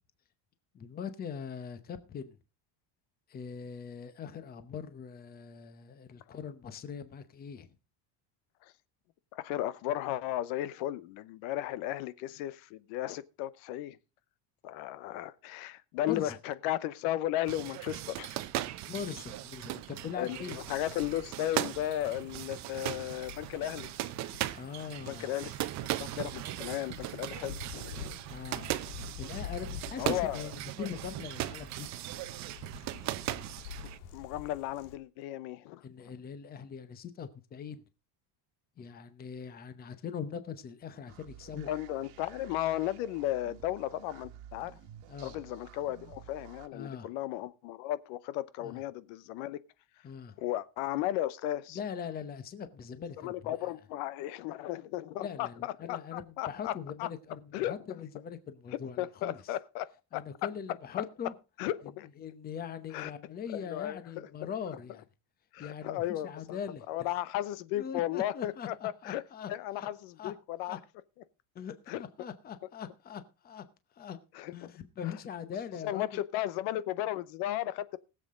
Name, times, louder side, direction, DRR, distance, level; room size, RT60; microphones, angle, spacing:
voice 1, 0.7-2.4 3.3-7.7 16.0-16.4 18.8-20.6 24.5-25.3 28.3-28.7 29.2-31.9 35.8-37.8 38.8-41.7 45.1-45.4 46.7-47.1 48.6-48.8 50.0-50.4 51.7-53.7 55.2-59.4 60.1-61.3 61.8-61.9 62.2-65.0 65.6-67.1 67.7-69.9 70.2-70.3 70.7-70.8 71.5-73.6 73.9-74.2 74.5-76.1, left 7 dB, 20° left, 0.8 m, -41 dB
voice 2, 9.3-14.0 14.6-18.4 20.2-23.9 25.1-25.6 26.0-28.2 30.0-30.5 34.1-35.8 41.7-44.8 45.2-49.6 50.4-51.8 53.2-57.1 57.5-57.7 59.0-60.2 61.6-62.1 62.9-63.1 63.7-64.0 65.5-66.6 66.9-69.2 69.5-70.8 71.9-72.0 74.3-74.7 75.0-75.1 75.8-78.0, left 13 dB, 75° left, 0.9 m, -35 dB
sound 1, 17.5-34.0, right 14 dB, 35° right, 0.7 m, -38 dB
sound 2, 20.5-34.9, left 8 dB, 90° left, 2.2 m, -48 dB
sound 3, 41.1-46.7, right 11 dB, 70° right, 1.5 m, -52 dB
20.5 x 7.7 x 3.7 m
cardioid pair, 175°, 46 cm